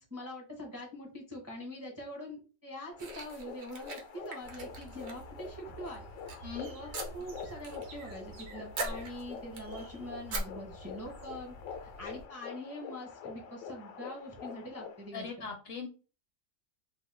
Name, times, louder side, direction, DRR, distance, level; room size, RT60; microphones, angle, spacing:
voice 1, 0.0-6.1 6.6-11.5 12.0-15.5, equal, 20° right, -1 dB, 0.4 m, -44 dB
sound 1, 2.9-15.1, left 6 dB, 85° left, 1.0 m, -46 dB
sound 2, 3.0-5.5 5.8-6.4 6.9-7.8 8.1-8.4 8.7-9.8 10.3-10.4, right 2 dB, 60° right, 0.9 m, -40 dB
sound 3, 4.4-12.3, right 2 dB, 85° right, 1.2 m, -51 dB
voice 2, 6.4-6.7 15.1-15.9, left 5 dB, 65° left, 4 dB, 0.7 m, -40 dB
2.9 x 2.2 x 3.2 m, 0.36 s
omnidirectional pair, 1.3 m